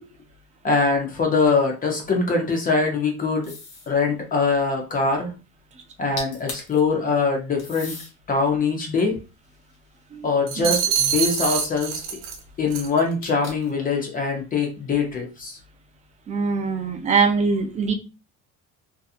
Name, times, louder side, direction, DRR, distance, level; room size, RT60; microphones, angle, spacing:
voice 1, 0.6-3.5 3.9-5.3 6.0-7.9 8.3-9.2 10.2-12.0 12.6-15.6, left 4 dB, 25° left, 2 dB, 0.6 m, -23 dB
sound 1, 3.4-3.9 5.9-6.0 6.2-6.8 7.6-8.1 8.8-10.3 13.2-13.8, left 3 dB, 45° left, 1.0 m, -38 dB
sound 2, 10.5-12.4 12.7-13.0, right 7 dB, 80° right, 0.8 m, -25 dB
voice 2, 16.3-17.9, right 5 dB, 25° right, 5 dB, 0.4 m, -22 dB
2.7 x 2.3 x 2.4 m, 0.30 s
cardioid pair, 150°, 32 cm